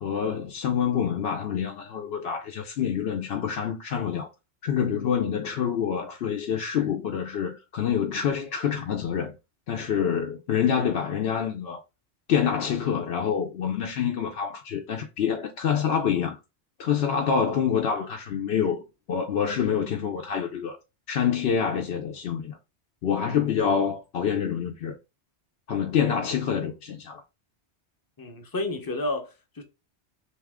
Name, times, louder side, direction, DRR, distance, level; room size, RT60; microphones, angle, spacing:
voice 1, 0.0-4.3 4.6-9.3 9.7-11.8 12.3-16.4 16.8-20.8 21.1-22.6 23.0-25.0 25.7-27.2, left 7 dB, 70° left, 0.8 m, -26 dB
voice 2, 28.2-29.6, left 2 dB, 20° left, 0.7 m, -31 dB
3.4 x 2.8 x 3.5 m
omnidirectional pair, 1.1 m